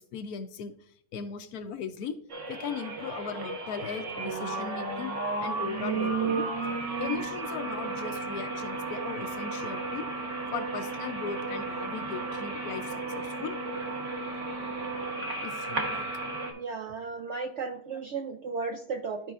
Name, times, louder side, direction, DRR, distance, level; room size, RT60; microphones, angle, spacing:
voice 1, 0.1-0.7 1.1-2.2 2.5-5.1 5.4-6.5 7.0-10.1 10.5-13.5 15.4-16.1, left 6 dB, 70° left, 9 dB, 1.0 m, -38 dB
sound 1, 2.3-16.5, right 3 dB, 50° right, 1.4 m, -33 dB
voice 2, 16.6-19.3, right 4 dB, 65° right, 5 dB, 0.7 m, -35 dB
13.0 x 4.7 x 2.4 m, 0.64 s
omnidirectional pair, 1.8 m